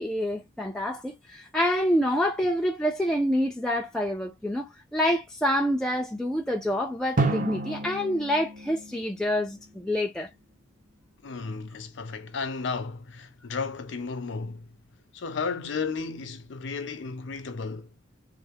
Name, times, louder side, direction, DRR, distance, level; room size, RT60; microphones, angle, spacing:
voice 1, 0.0-10.3, equal, 5° left, 0.4 m, -27 dB
Drum, 7.2-9.9, right 2 dB, 45° right, 0.7 m, -31 dB
voice 2, 11.2-14.7 15.1-18.0, left 4 dB, 65° left, 0.6 m, -33 dB
3.2 x 2.1 x 3.4 m
head